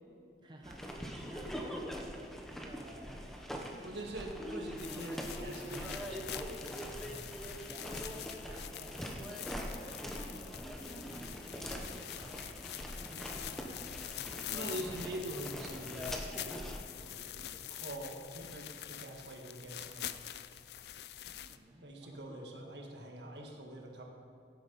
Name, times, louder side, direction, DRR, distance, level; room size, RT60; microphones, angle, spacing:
voice 1, 0.4-2.3 2.6-3.3 3.8-4.1 7.1-14.2 16.9-17.8 21.2-22.4, right 1 dB, 25° right, 1 dB, 0.8 m, -55 dB
sound 1, 0.6-16.8, equal, ahead, 0.9 m, -43 dB
voice 2, 3.8-6.4 6.6-7.3 13.1-13.3 14.5-16.3 17.7-20.1 21.8-24.0, right 1 dB, 75° right, 1 dB, 1.7 m, -44 dB
sound 2, 4.8-21.6, left 11 dB, 65° left, 0.4 m, -45 dB
16.5 x 8.8 x 4.1 m, 2.5 s
head